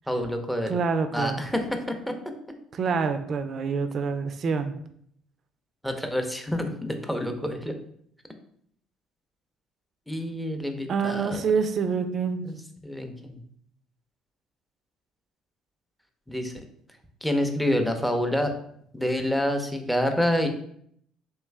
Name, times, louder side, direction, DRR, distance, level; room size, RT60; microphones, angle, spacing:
voice 1, 0.1-0.8 1.1-2.3 5.8-7.8 10.1-11.4 12.4-12.6 12.8-13.4 16.3-16.5 17.2-18.5 18.9-20.5, equal, ahead, 5 dB, 0.6 m, -27 dB
voice 2, 0.7-1.5 2.8-4.7 10.9-12.4, right 5 dB, 50° right, 8 dB, 0.4 m, -26 dB
3.1 x 3.1 x 3.3 m, 0.67 s
hypercardioid pair, 55°, 0 cm